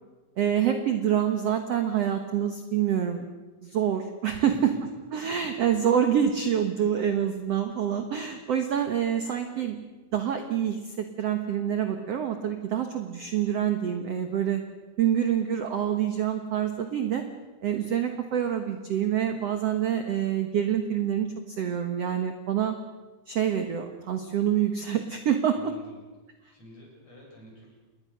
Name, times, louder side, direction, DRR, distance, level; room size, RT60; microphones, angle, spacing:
voice 1, 0.4-3.2 3.6-4.7 5.1-9.8 10.1-14.6 15.0-17.2 17.6-22.7 23.3-25.7, right 9 dB, 65° right, 6 dB, 1.6 m, -26 dB
voice 2, 4.4-4.8 25.5-26.0 26.5-27.7, equal, 40° left, -2 dB, 9.2 m, -49 dB
28.5 x 20.5 x 6.6 m, 1.2 s
omnidirectional pair, 4.7 m